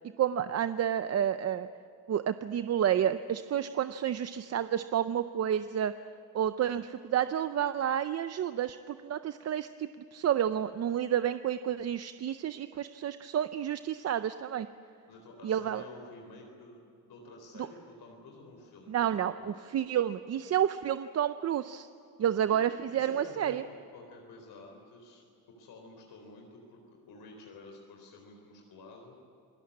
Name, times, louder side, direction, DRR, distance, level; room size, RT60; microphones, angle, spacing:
voice 1, 0.2-1.7 2.1-5.9 6.3-14.7 15.4-15.8 17.6-17.7 18.9-21.9 22.2-23.6, right 10 dB, 45° right, 11 dB, 0.6 m, -30 dB
voice 2, 15.1-16.8 17.1-19.7 22.5-22.6 22.9-25.2 25.6-29.2, left 2 dB, 80° left, 1 dB, 4.2 m, -51 dB
28.0 x 19.5 x 8.6 m, 2.6 s
cardioid pair, 170°, 37 cm